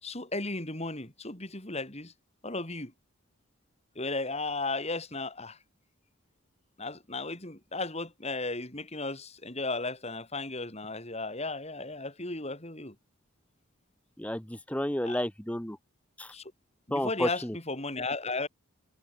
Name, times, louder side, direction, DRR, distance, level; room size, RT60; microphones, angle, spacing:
voice 1, 0.0-2.1 2.4-2.9 4.0-5.6 6.8-13.0 15.0-15.3 16.3-16.5 16.9-18.5, left 3 dB, 30° left, 5.3 m, -35 dB
voice 2, 14.2-15.8 16.2-16.3 16.9-17.6, left 1 dB, 5° left, 1.0 m, -31 dB
head